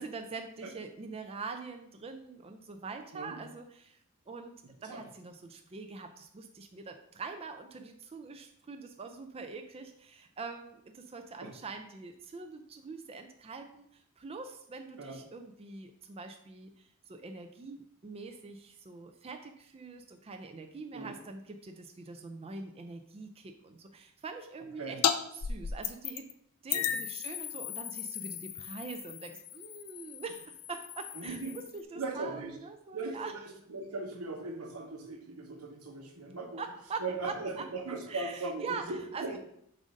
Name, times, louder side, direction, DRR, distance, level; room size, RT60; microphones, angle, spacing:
voice 1, 0.0-4.0 4.3-4.6 4.8-25.0 25.3-26.2 26.6-33.3 36.6-37.6 38.1-39.4, right 4 dB, 25° right, 6 dB, 0.4 m, -44 dB
sound 1, 25.0-25.2 25.4-26.3 26.7-31.8, left 9 dB, 90° left, 0.5 m, -35 dB
voice 2, 31.1-31.6 31.9-32.6 32.9-36.6 37.0-39.4, right 3 dB, 85° right, 3 dB, 1.1 m, -39 dB
7.4 x 2.6 x 5.1 m, 0.72 s
head